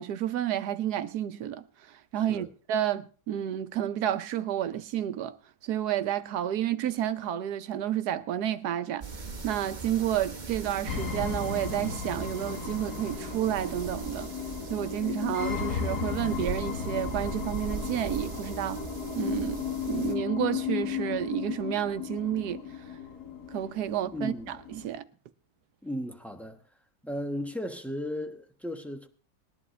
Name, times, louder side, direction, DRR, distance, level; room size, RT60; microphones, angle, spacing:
voice 1, 0.0-1.6 2.1-5.3 5.6-9.0 9.4-14.3 14.7-18.8 19.2-22.6 23.5-25.0, right 11 dB, 80° right, 1.3 m, -30 dB
sound 1, 9.0-20.1, right 4 dB, 30° right, 1.3 m, -40 dB
sound 2, 10.9-24.9, left 7 dB, 80° left, 2.1 m, -35 dB
voice 2, 24.1-24.6 25.8-26.6 27.0-29.1, equal, ahead, 1.1 m, -35 dB
20.0 x 11.0 x 3.2 m
omnidirectional pair, 1.7 m